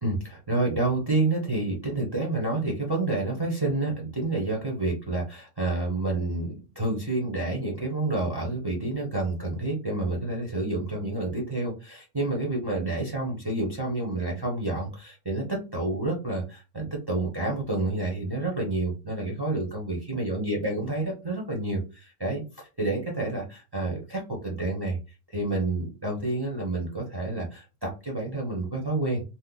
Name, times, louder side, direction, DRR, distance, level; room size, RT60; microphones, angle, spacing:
voice 1, 0.0-25.0 25.3-29.2, right 2 dB, 25° right, -1 dB, 0.7 m, -29 dB
2.8 x 2.1 x 3.8 m, 0.31 s
omnidirectional pair, 1.2 m